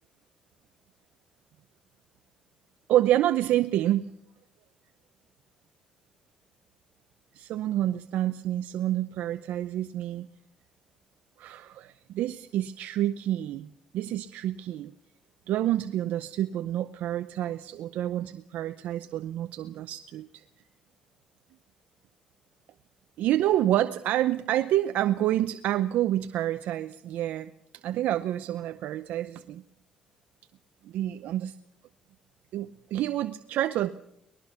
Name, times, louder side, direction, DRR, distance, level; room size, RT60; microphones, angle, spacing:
voice 1, 2.9-4.1 7.3-10.3 11.4-13.7 13.9-14.9 15.5-20.4 23.2-27.5 27.8-29.6 30.8-31.5 32.5-33.9, right 13 dB, 75° right, 10 dB, 0.7 m, -28 dB
23.5 x 20.0 x 5.8 m, 0.74 s
cardioid pair, 85°, 3 cm